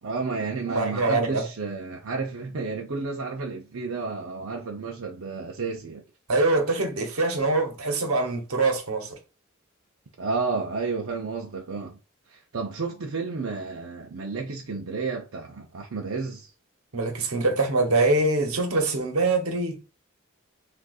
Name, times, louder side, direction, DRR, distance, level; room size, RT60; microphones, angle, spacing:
voice 1, 0.0-6.0 10.2-12.0 12.3-16.5, right 4 dB, 65° right, 0.6 m, -31 dB
voice 2, 0.7-1.5 6.3-9.2 16.9-19.8, right 2 dB, 85° right, 1.0 m, -24 dB
6.2 x 2.5 x 2.4 m
head